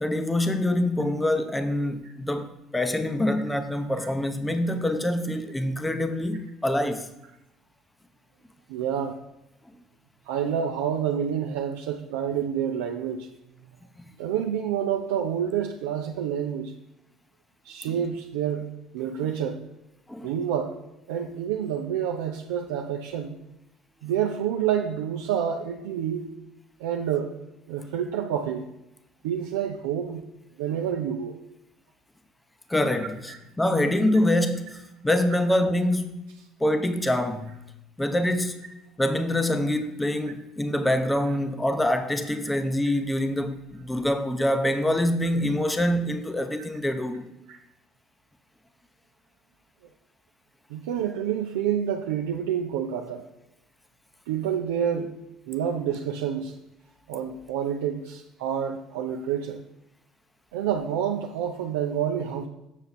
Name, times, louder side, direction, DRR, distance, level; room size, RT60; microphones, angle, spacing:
voice 1, 0.0-7.1 20.1-20.3 32.7-36.2 36.6-37.6 38.0-38.7 39.0-47.3, left 1 dB, 10° left, 0.8 m, -25 dB
voice 2, 8.7-9.2 10.3-13.3 14.2-16.7 17.6-18.7 18.9-19.6 20.2-20.8 21.1-23.4 24.0-26.3 26.8-27.3 27.7-28.6 29.2-30.2 30.6-31.4 33.3-33.4 47.5-47.6 50.7-53.2 54.3-55.1 55.5-56.5 57.1-59.6 60.5-62.5, right 9 dB, 90° right, 0.6 m, -28 dB
7.2 x 6.6 x 4.2 m
supercardioid pair, 85°, 0 cm